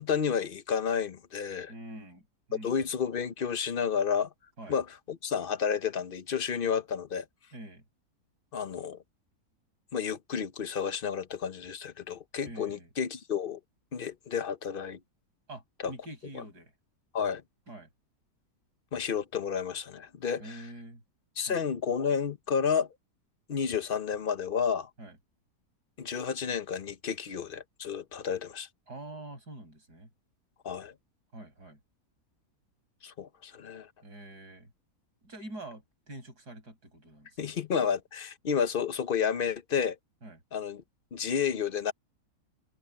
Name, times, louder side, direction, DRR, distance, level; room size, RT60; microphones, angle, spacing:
voice 1, 0.0-1.7 2.6-4.3 4.7-7.2 8.5-9.0 9.9-13.6 13.9-15.0 15.8-15.9 16.3-16.4 17.1-17.4 18.9-20.6 21.4-22.9 23.5-24.9 26.0-28.7 30.6-30.9 33.0-33.9 37.4-40.0 40.5-40.8 41.1-41.9, left 7 dB, 45° left, 0.8 m, -31 dB
voice 2, 1.7-2.8 4.6-4.8 7.5-7.8 12.4-12.9 15.5-16.7 17.7-17.9 20.4-21.0 21.5-21.6 25.0-25.2 28.9-30.1 31.3-31.8 34.0-34.7 35.2-37.3 40.2-40.4, right 1 dB, 85° right, 8.0 m, -45 dB
omnidirectional pair, 1.7 m